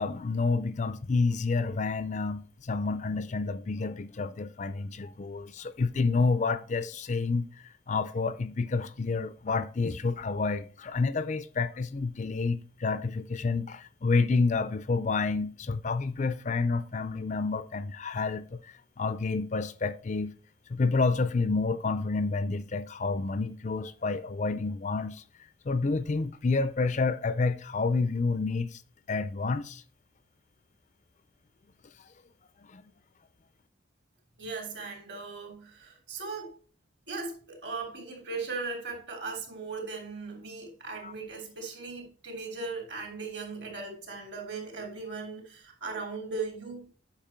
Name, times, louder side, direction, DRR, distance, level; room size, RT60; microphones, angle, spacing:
voice 1, 0.0-20.3 20.7-25.2 25.7-28.8 29.1-29.8 32.7-32.8 41.0-41.1, left 4 dB, 35° left, 0.4 m, -29 dB
voice 2, 34.4-36.6 37.1-46.9, right 4 dB, 60° right, 3.1 m, -38 dB
8.8 x 5.8 x 4.4 m
head